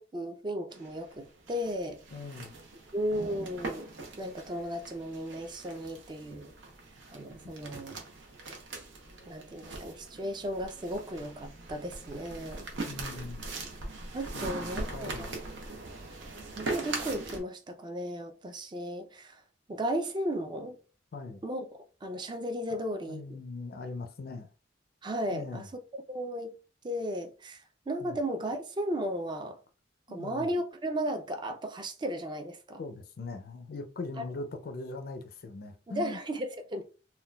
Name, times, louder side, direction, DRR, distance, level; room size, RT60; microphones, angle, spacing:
voice 1, 0.0-2.0 2.9-3.9 4.2-6.5 7.1-8.0 9.3-12.7 14.1-15.4 16.5-19.4 19.7-20.8 21.4-21.7 22.0-23.2 25.0-26.5 26.8-29.6 30.1-32.8 34.2-34.3 35.9-36.8, equal, 25° right, 0.4 m, -35 dB
sound 1, 0.7-17.4, right 2 dB, 85° right, 0.8 m, -41 dB
voice 2, 2.1-2.5 7.7-8.0 12.9-13.4 14.3-14.7 14.9-15.4 21.1-21.4 22.7-22.8 23.1-24.5 25.3-25.7 28.0-28.2 30.1-30.5 32.8-36.2, left 3 dB, 50° left, 0.4 m, -41 dB
3.7 x 2.2 x 2.2 m
head